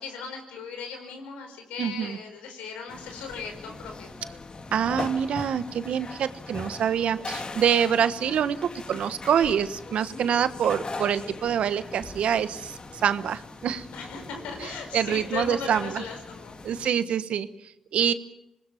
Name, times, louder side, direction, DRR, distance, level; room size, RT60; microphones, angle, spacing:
voice 1, 0.0-4.1 8.3-8.6 13.9-16.6, left 5 dB, 90° left, 4 dB, 5.0 m, -38 dB
voice 2, 1.8-2.2 4.7-13.9 14.6-16.0 16.6-17.5 17.9-18.1, right 8 dB, 75° right, 12 dB, 1.3 m, -26 dB
sound 1, 2.9-16.9, left 3 dB, 45° left, 2.5 m, -40 dB
26.5 x 20.5 x 7.2 m, 0.88 s
supercardioid pair, 40°, 2 cm